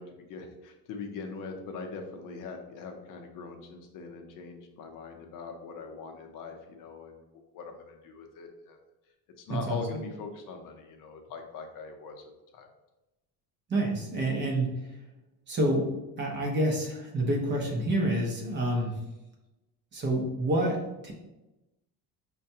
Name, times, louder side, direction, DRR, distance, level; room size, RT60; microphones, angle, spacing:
voice 1, 0.0-8.8 9.4-12.2 12.5-12.7, left 4 dB, 55° left, 4 dB, 0.6 m, -41 dB
voice 2, 13.7-14.9 15.5-18.9 19.9-20.8 21.0-21.1, right 1 dB, 30° right, -1 dB, 0.6 m, -28 dB
5.4 x 2.2 x 2.7 m, 1.0 s
cardioid pair, 175°, 39 cm